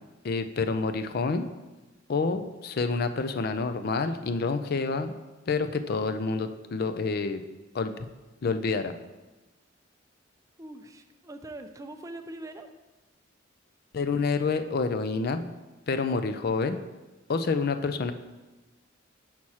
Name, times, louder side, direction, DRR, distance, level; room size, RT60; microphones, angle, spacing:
voice 1, 0.2-1.5 2.1-5.1 5.5-7.4 7.7-8.1 8.4-8.9 13.9-15.5 15.9-16.8 17.3-18.1, left 4 dB, 55° left, 9 dB, 0.5 m, -28 dB
voice 2, 10.6-12.7, right 1 dB, 15° right, 7 dB, 0.4 m, -42 dB
6.3 x 5.9 x 4.2 m, 1.1 s
head